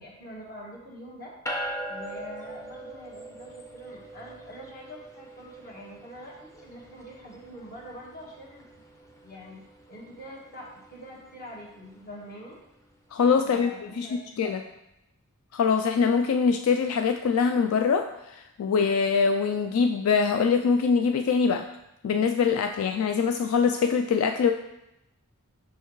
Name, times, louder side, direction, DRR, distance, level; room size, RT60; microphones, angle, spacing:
voice 1, 0.0-1.3 1.9-8.6 9.2-12.6 13.4-14.7, equal, 40° left, -3 dB, 1.5 m, -44 dB
sound 1, 1.5-13.0, right 1 dB, 15° left, 0.6 m, -42 dB
voice 2, 13.1-14.1 14.4-14.6 15.5-21.7 22.0-24.5, left 5 dB, 75° left, 6 dB, 0.3 m, -23 dB
6.3 x 5.6 x 3.1 m, 0.89 s
head